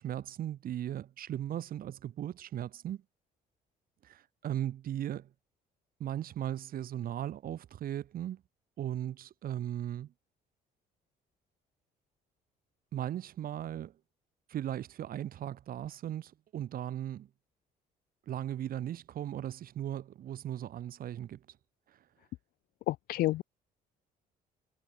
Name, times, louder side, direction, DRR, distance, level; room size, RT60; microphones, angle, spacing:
voice 1, 0.0-3.0 4.0-5.3 6.0-8.4 8.8-10.1 12.9-13.9 14.5-17.3 18.3-21.4, right 11 dB, 60° right, 3.2 m, -37 dB
voice 2, 22.9-23.4, left 16 dB, 65° left, 0.4 m, -29 dB
cardioid pair, 110°, 17 cm